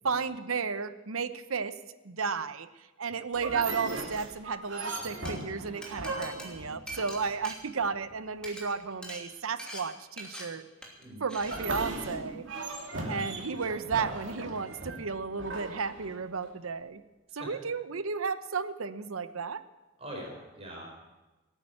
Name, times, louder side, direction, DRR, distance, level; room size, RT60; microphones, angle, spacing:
voice 1, 0.0-1.7 2.0-2.7 3.0-10.6 11.2-12.5 13.1-17.0 17.3-19.6, right 5 dB, 85° right, 12 dB, 0.9 m, -33 dB
sound 1, 3.3-7.6 11.4-16.5, right 2 dB, 60° right, 2.6 m, -38 dB
Glass, 5.2-5.3 5.8-8.1 8.4-8.6 9.0-9.2 9.6-9.8 10.2-10.4 10.8-11.0 11.3-11.6, equal, 5° left, 2.7 m, -43 dB
voice 2, 20.0-20.9, right 1 dB, 30° right, -1 dB, 4.9 m, -43 dB
18.0 x 9.1 x 8.8 m, 1.1 s
head